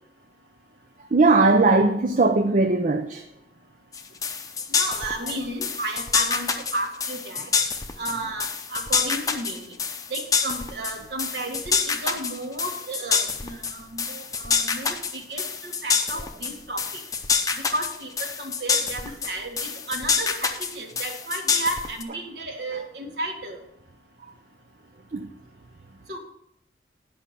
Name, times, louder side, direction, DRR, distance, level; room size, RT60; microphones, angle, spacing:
voice 1, 1.1-3.2 25.1-25.3, right 3 dB, 45° right, 0.5 m, -19 dB
sound 1, 3.9-22.0, left 5 dB, 20° left, 0.7 m, -26 dB
voice 2, 4.7-7.5 8.0-9.8 10.1-17.0 17.7-23.6 26.1-26.2, right 1 dB, 65° right, 1.8 m, -33 dB
10.5 x 5.5 x 6.7 m
head